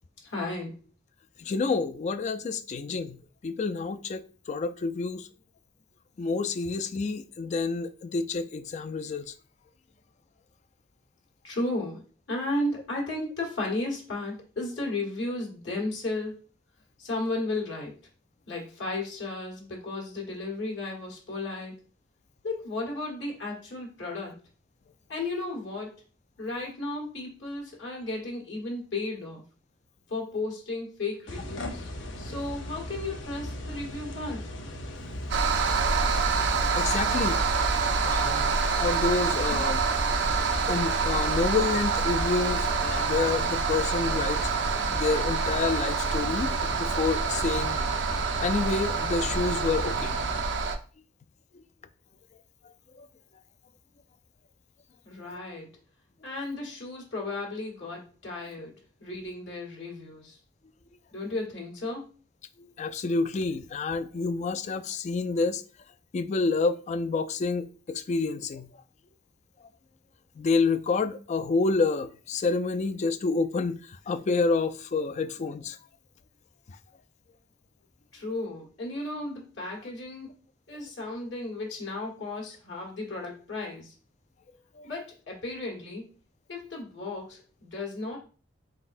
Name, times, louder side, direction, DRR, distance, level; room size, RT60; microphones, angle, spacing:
voice 1, 0.2-0.8 11.4-16.4 17.0-18.0 18.5-21.7 22.4-24.4 25.1-26.0 26.4-29.4 30.1-31.9 32.2-34.4 55.0-55.7 56.2-60.4 61.1-62.1 78.1-80.3 80.7-83.9 84.8-86.0 86.5-88.2, left 2 dB, 75° left, 1.8 m, -34 dB
voice 2, 1.4-3.2 3.4-5.3 6.2-9.3 36.7-37.4 38.0-39.8 40.6-44.4 44.9-47.8 48.4-50.1 53.0-53.1 62.6-65.6 66.1-68.7 70.4-75.8 84.8-84.9, left 4 dB, 40° left, 0.3 m, -28 dB
sound 1, 31.3-50.4, left 1 dB, 90° left, 0.8 m, -38 dB
sound 2, 35.3-50.8, right 5 dB, 80° right, 0.6 m, -27 dB
4.2 x 4.0 x 2.6 m
head